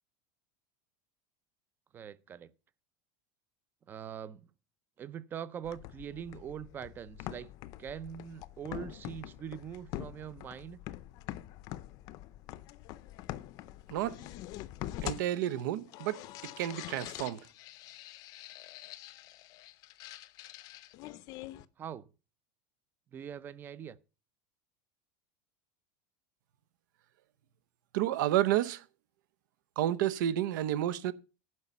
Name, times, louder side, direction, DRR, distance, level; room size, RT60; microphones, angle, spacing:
voice 1, 1.9-2.5 3.9-4.5 5.0-7.5 7.8-10.8 21.8-22.1 23.1-24.0, right 8 dB, 20° right, 0.4 m, -42 dB
sound 1, 5.6-21.6, left 15 dB, 35° left, 0.5 m, -45 dB
voice 2, 15.0-17.4 27.9-28.8 29.8-31.1, right 12 dB, 75° right, 0.8 m, -30 dB
11.0 x 5.5 x 7.2 m
supercardioid pair, 170°, 10 cm